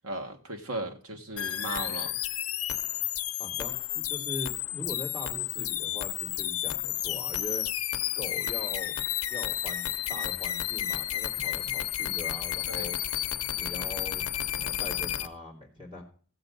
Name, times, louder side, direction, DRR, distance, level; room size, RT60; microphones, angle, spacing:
voice 1, 0.0-2.2 12.7-12.9, right 2 dB, 75° right, 4 dB, 1.7 m, -36 dB
sound 1, 1.4-15.3, left 12 dB, 80° left, 0.7 m, -32 dB
voice 2, 3.4-7.6 8.1-8.9 9.3-13.0 13.6-14.2 14.6-16.0, left 2 dB, 25° right, -1 dB, 3.0 m, -41 dB
15.5 x 7.9 x 3.9 m, 0.42 s
head